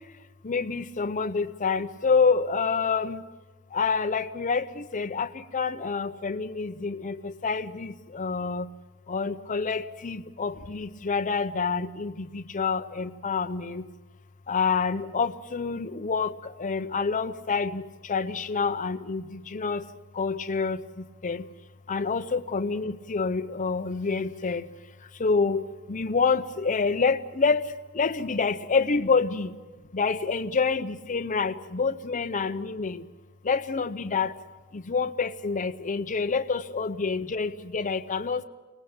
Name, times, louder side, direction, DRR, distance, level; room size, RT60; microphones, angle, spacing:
voice 1, 0.4-3.2 3.7-8.7 9.1-13.8 14.5-19.8 20.1-20.8 21.2-21.4 21.9-24.6 25.2-27.6 27.9-29.5 29.9-33.0 33.4-34.3 34.7-38.4, left 5 dB, 35° left, 9 dB, 0.7 m, -27 dB
24.5 x 19.0 x 8.8 m, 1.3 s
head